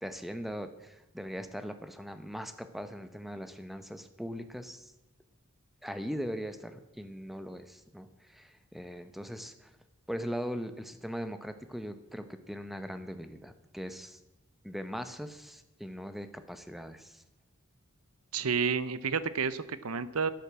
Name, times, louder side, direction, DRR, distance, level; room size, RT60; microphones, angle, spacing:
voice 1, 0.0-4.9 5.8-9.7 10.1-14.2 14.6-17.2, equal, ahead, 9 dB, 1.0 m, -40 dB
voice 2, 18.3-20.3, right 5 dB, 85° right, 15 dB, 0.8 m, -30 dB
11.5 x 10.5 x 7.5 m, 0.91 s
head